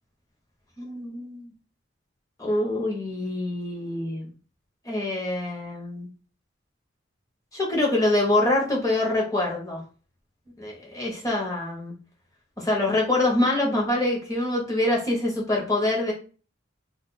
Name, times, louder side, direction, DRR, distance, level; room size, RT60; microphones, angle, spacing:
voice 1, 0.8-1.5 2.4-4.3 4.8-6.1 7.5-9.8 10.6-11.9 12.6-16.1, left 1 dB, 20° left, -2 dB, 1.0 m, -25 dB
2.5 x 2.4 x 3.9 m, 0.38 s
head